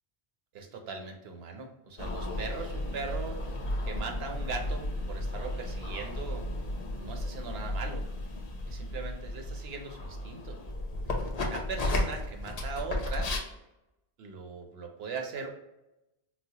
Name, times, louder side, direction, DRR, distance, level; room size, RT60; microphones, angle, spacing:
voice 1, 0.5-3.4 3.9-6.5 6.9-8.1 8.7-10.6 11.4-13.3 14.2-15.5, right 4 dB, 80° right, 3 dB, 0.9 m, -39 dB
sound 1, 2.0-13.4, left 1 dB, 45° left, 0.6 m, -34 dB
4.1 x 2.0 x 2.8 m, 0.93 s
omnidirectional pair, 1.0 m